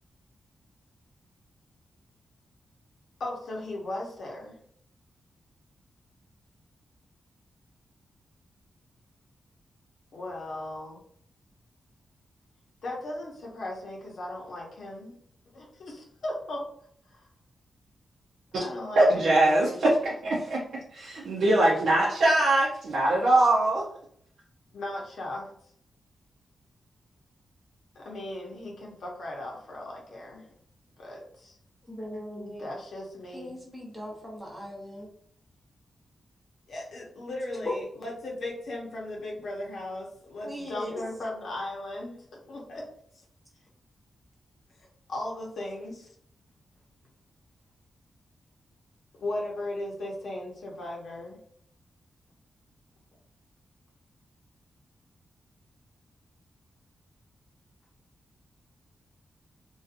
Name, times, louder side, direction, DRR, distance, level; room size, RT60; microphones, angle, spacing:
voice 1, 3.2-4.6 10.1-11.0 12.8-15.2 15.5-16.6 17.1-17.2 18.6-19.8 24.7-25.5 27.9-30.5 31.0-31.6 32.6-33.5 36.7-42.9 45.1-46.1 49.2-51.4, left 1 dB, 65° left, -2 dB, 0.7 m, -37 dB
voice 2, 19.0-20.6 20.9-23.8, right 1 dB, 75° right, -6 dB, 0.5 m, -22 dB
voice 3, 31.9-32.7 33.3-35.1 37.6-37.7 40.4-41.0, left 1 dB, ahead, -4 dB, 0.7 m, -38 dB
2.6 x 2.2 x 2.5 m, 0.64 s
wide cardioid pair, 160°, 0 cm